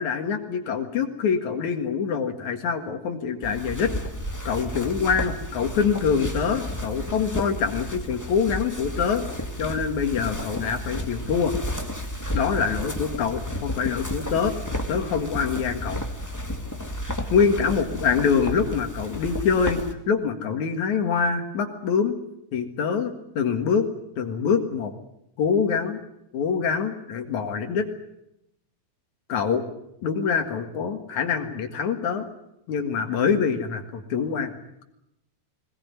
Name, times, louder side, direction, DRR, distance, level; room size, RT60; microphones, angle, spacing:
voice 1, 0.0-3.9 4.4-9.3 9.6-11.5 12.3-14.6 14.9-16.0 17.3-22.2 22.5-23.9 24.2-24.9 25.4-26.0 26.3-27.9 29.3-29.6 30.0-32.3 32.7-34.5, left 6 dB, 60° left, 6 dB, 2.9 m, -25 dB
sound 1, 3.4-19.9, left 1 dB, 10° left, 0.9 m, -32 dB
21.5 x 19.5 x 9.6 m, 0.82 s
omnidirectional pair, 4.1 m